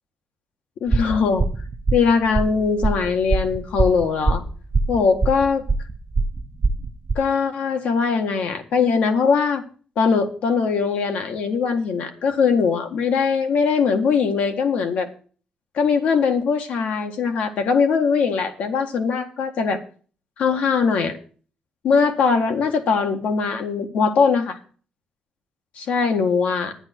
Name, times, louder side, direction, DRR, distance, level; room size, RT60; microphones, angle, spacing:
voice 1, 0.8-1.5 1.9-4.4 4.9-5.6 7.2-9.6 10.0-15.1 15.8-19.8 20.4-21.2 21.8-24.6 25.8-26.8, left 5 dB, 75° left, 6 dB, 1.7 m, -21 dB
sound 1, 0.9-7.1, right 3 dB, 25° right, 0.6 m, -22 dB
11.0 x 10.0 x 4.5 m, 0.40 s
cardioid pair, 160°, 2 cm